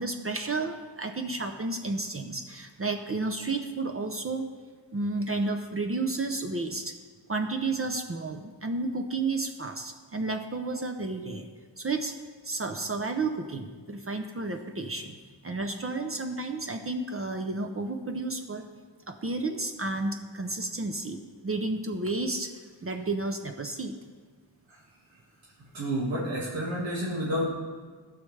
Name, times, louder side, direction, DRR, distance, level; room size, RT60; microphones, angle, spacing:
voice 1, 0.0-4.5 4.9-6.9 7.3-11.5 11.8-12.1 12.4-15.2 15.4-18.6 19.1-22.5 22.8-23.9, right 3 dB, 30° right, 5 dB, 0.6 m, -31 dB
voice 2, 25.7-27.5, equal, 85° right, -7 dB, 1.9 m, -29 dB
15.5 x 6.4 x 3.3 m, 1.5 s
wide cardioid pair, 120°, 44 cm